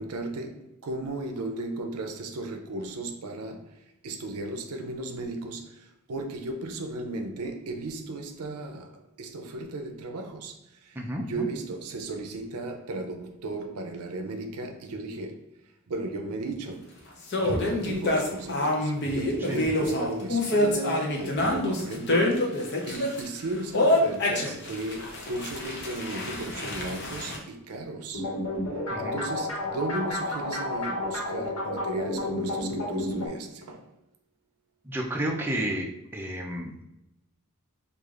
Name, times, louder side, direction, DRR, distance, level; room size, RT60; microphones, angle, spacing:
voice 1, 0.0-15.5 15.9-17.1 17.4-28.3 28.7-33.9, right 2 dB, 75° right, 0.5 m, -36 dB
voice 2, 10.9-11.5 19.5-19.6 28.9-29.2 34.8-36.8, right 1 dB, 10° right, 0.4 m, -31 dB
sound 1, 17.3-23.2 23.7-27.4, left 1 dB, 50° left, 0.7 m, -26 dB
sound 2, 28.1-33.3, left 1 dB, 80° left, 1.3 m, -31 dB
4.8 x 2.5 x 2.4 m
head